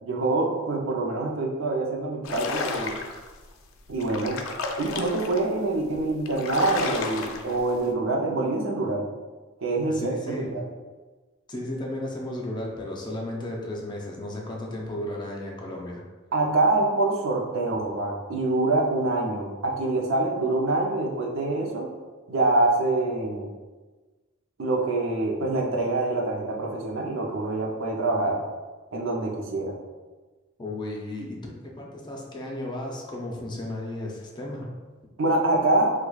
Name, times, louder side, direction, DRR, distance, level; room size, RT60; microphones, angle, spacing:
voice 1, 0.0-2.9 3.9-4.4 4.8-9.1 9.6-10.7 16.3-21.9 22.3-23.5 24.6-28.4 28.9-29.8 35.2-35.9, right 2 dB, 75° right, -1 dB, 0.6 m, -25 dB
sound 1, 2.2-3.3 3.9-5.4 5.9-6.0 6.3-7.6, left 3 dB, 80° left, 0.4 m, -31 dB
voice 2, 9.9-10.6 11.5-16.0 30.6-34.7, left 1 dB, 20° left, -2 dB, 0.5 m, -34 dB
4.6 x 2.2 x 2.3 m, 1.3 s
head